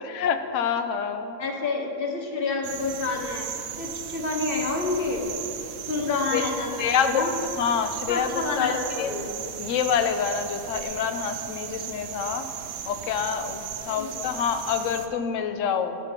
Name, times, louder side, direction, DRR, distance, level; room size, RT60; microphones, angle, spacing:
voice 1, 0.0-1.4 6.3-6.4 6.8-7.3 7.6-9.1 9.6-12.5 12.9-16.0, left 7 dB, 75° left, 9 dB, 0.9 m, -27 dB
voice 2, 1.4-5.2 5.9-7.4 8.1-9.3 13.9-14.3, left 3 dB, 50° left, 2 dB, 1.1 m, -29 dB
sound 1, 2.6-15.1, right 9 dB, 85° right, 1.0 m, -36 dB
13.5 x 5.0 x 4.5 m, 2.9 s
omnidirectional pair, 1.4 m